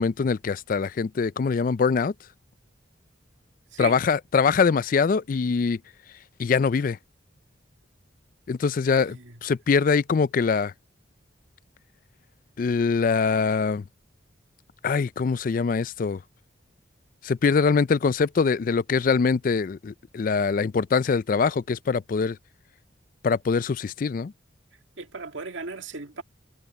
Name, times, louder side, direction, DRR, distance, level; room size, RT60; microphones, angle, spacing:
voice 1, 0.0-2.1 3.8-5.8 6.4-7.0 8.5-9.2 9.4-10.7 12.6-13.8 14.8-16.2 17.2-22.4 23.2-24.3, left 5 dB, 45° left, 0.3 m, -23 dB
voice 2, 9.0-9.4 25.0-26.2, right 4 dB, 75° right, 2.0 m, -37 dB
head